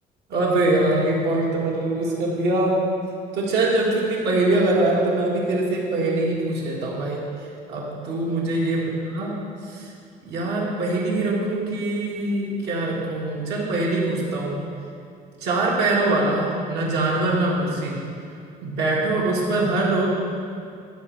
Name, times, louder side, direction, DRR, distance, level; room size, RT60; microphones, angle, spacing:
voice 1, 0.3-2.8 3.3-7.2 7.7-9.3 9.6-9.9 10.2-14.6 15.4-18.0 18.6-20.1, right 2 dB, 75° right, -3 dB, 2.0 m, -23 dB
11.5 x 5.6 x 4.7 m, 2.4 s
cardioid pair, 110°, 17 cm